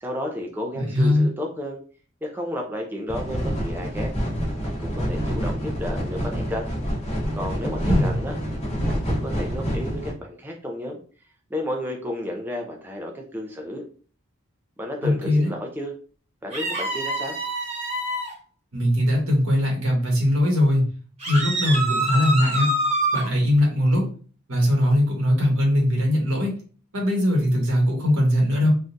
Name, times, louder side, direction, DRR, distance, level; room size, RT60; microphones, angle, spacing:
voice 1, 0.0-1.8 2.2-4.1 4.6-6.7 7.4-8.3 8.9-11.0 11.5-13.8 14.8-15.9 16.4-17.4, left 1 dB, 10° right, 0 dB, 0.4 m, -32 dB
voice 2, 0.7-1.3 7.8-8.2 15.0-15.5 18.7-20.8 21.3-22.7 23.1-24.1 24.5-26.5 26.9-28.7, left 1 dB, 85° right, -1 dB, 1.3 m, -20 dB
sound 1, 3.1-10.1, equal, 30° left, 1.0 m, -27 dB
sound 2, 16.5-18.3 21.2-23.3, right 1 dB, 30° right, 1.0 m, -26 dB
3.6 x 2.3 x 2.6 m, 0.40 s
head